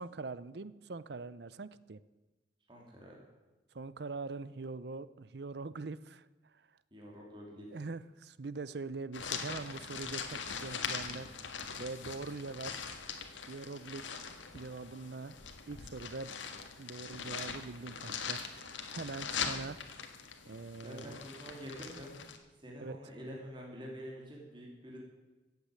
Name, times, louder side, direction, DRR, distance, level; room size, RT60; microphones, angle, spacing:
voice 1, 0.0-2.0 3.7-6.3 7.7-11.3 11.8-12.9 13.5-14.2 14.5-15.4 15.7-16.3 16.8-19.8 20.5-21.2 22.8-23.0, right 3 dB, 60° right, 17 dB, 0.6 m, -43 dB
voice 2, 2.7-3.2 6.9-7.8 20.8-22.2 22.6-25.0, equal, 25° right, -2 dB, 2.9 m, -47 dB
sound 1, 9.1-22.4, left 6 dB, 90° left, 1.7 m, -42 dB
15.0 x 8.3 x 9.0 m, 1.1 s
head